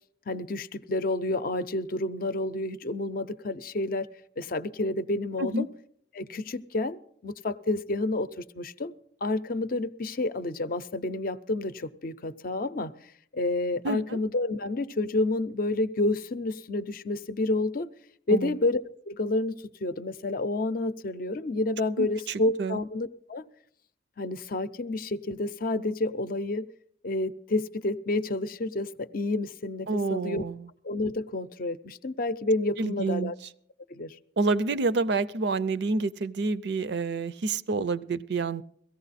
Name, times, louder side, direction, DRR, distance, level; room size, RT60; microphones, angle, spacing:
voice 1, 0.3-4.1 4.4-5.7 6.1-8.9 9.2-12.9 13.3-17.9 18.3-23.5 24.2-26.7 27.0-30.4 30.8-33.4 33.9-34.2, left 2 dB, 50° left, 13 dB, 0.6 m, -29 dB
voice 2, 13.8-14.2 18.3-18.5 22.0-22.8 29.9-30.7 32.8-33.3 34.4-38.6, right 3 dB, 60° right, 17 dB, 0.5 m, -28 dB
17.0 x 14.5 x 4.1 m, 0.65 s
head